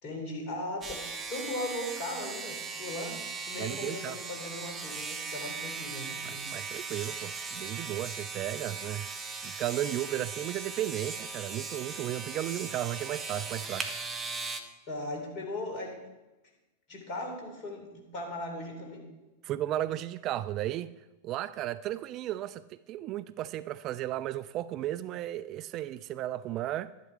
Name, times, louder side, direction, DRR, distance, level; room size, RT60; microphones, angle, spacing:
voice 1, 0.0-6.5 14.9-16.0 16.9-19.1, left 1 dB, 40° left, 3.7 m, -38 dB
sound 1, 0.8-14.6, right 4 dB, 20° right, 1.1 m, -38 dB
voice 2, 3.6-4.2 6.2-9.1 9.4-13.9 19.4-20.9 21.2-26.9, right 13 dB, 35° right, 0.3 m, -34 dB
12.0 x 11.0 x 4.6 m
figure-of-eight pair, 90°, 0 cm